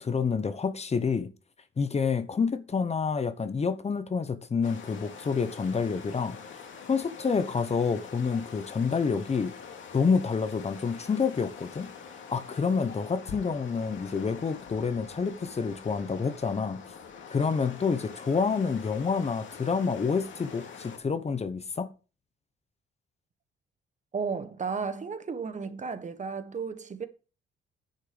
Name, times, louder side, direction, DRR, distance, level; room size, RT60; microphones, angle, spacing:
voice 1, 0.0-1.3 1.8-6.4 6.9-9.5 9.9-11.9 12.3-16.8 17.3-21.9, left 5 dB, 35° left, 1.1 m, -28 dB
sound 1, 4.6-21.0, left 6 dB, 75° left, 2.6 m, -45 dB
voice 2, 24.1-27.1, right 5 dB, 40° right, 1.4 m, -33 dB
10.0 x 6.5 x 5.2 m
cardioid pair, 90°, 20 cm